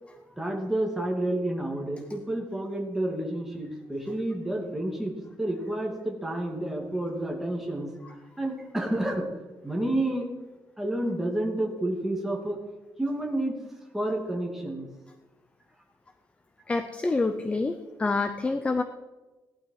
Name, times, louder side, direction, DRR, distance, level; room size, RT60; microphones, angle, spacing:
voice 1, 0.4-7.9 8.4-9.3 9.6-10.3 10.8-12.6 13.0-13.6 13.9-14.9, right 1 dB, 5° right, -1 dB, 2.6 m, -30 dB
voice 2, 16.7-18.8, left 3 dB, 15° left, 8 dB, 0.7 m, -27 dB
17.5 x 12.0 x 4.8 m, 1.1 s
cardioid pair, 175°, 8 cm